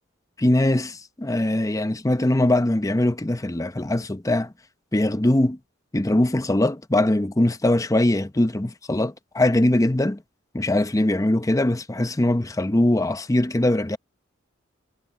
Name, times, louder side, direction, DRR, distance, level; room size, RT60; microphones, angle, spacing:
voice 1, 0.4-4.5 4.9-5.6 5.9-10.2 10.5-14.0, left 1 dB, 15° left, 0.7 m, -21 dB
head